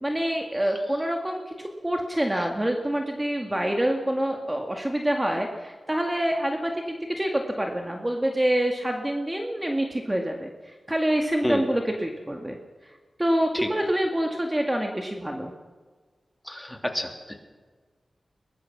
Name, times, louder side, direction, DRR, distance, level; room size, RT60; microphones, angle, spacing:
voice 1, 0.0-12.6 12.8-12.9 13.2-15.5, right 1 dB, 15° right, 2 dB, 2.1 m, -26 dB
voice 2, 16.4-17.5, left 1 dB, 5° left, 4 dB, 3.0 m, -29 dB
22.5 x 20.0 x 6.0 m, 1.4 s
wide cardioid pair, 75°, 0 cm